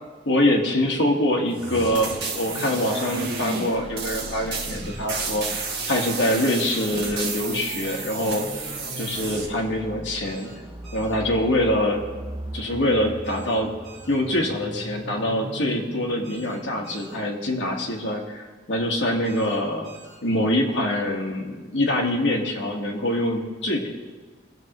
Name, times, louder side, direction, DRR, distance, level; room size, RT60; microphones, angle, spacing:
voice 1, 0.2-5.6 5.9-8.4 9.0-10.5 10.9-12.0 12.5-13.7 14.1-19.9 20.2-23.9, left 1 dB, 75° left, 0 dB, 1.4 m, -24 dB
sound 1, 1.5-9.5, right 4 dB, 60° right, 1.3 m, -31 dB
sound 2, 4.0-17.7, right 1 dB, 20° right, 0.5 m, -40 dB
sound 3, 4.8-5.1 7.2-7.5 7.8-8.2 10.2-10.5 10.8-11.2 13.2-13.6 13.8-14.2 16.2-16.6 16.8-17.2 19.2-19.6 19.8-20.2, right 4 dB, ahead, 3.2 m, -48 dB
18.0 x 6.3 x 3.0 m, 1.4 s
head